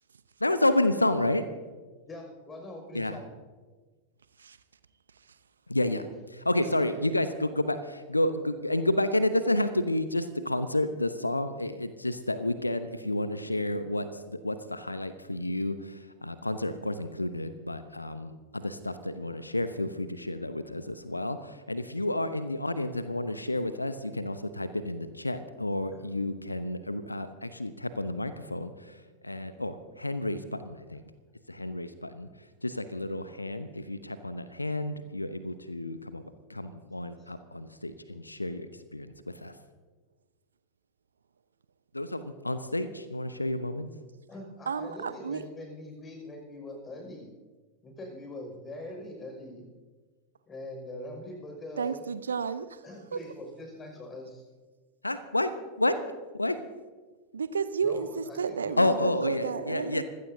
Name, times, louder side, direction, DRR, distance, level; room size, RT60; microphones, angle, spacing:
voice 1, 0.4-1.4 2.9-3.2 5.7-6.0 6.3-29.0 29.2-31.0 31.5-32.3 32.6-36.2 36.5-38.7 38.9-39.5 41.9-43.9 55.0-55.5 55.8-56.1 56.4-56.5 58.8-60.0, left 1 dB, 85° left, 0.8 m, -30 dB
voice 2, 2.1-3.3 6.6-7.0 25.9-26.0 37.2-37.3 44.3-47.3 47.8-49.7 50.5-52.1 52.8-54.4 57.8-60.0, left 1 dB, 20° left, 5.8 m, -43 dB
voice 3, 44.7-45.5 51.8-52.7 53.1-53.2 57.3-60.0, right 6 dB, 70° right, 0.8 m, -32 dB
25.5 x 16.0 x 2.8 m
figure-of-eight pair, 90°, 0 cm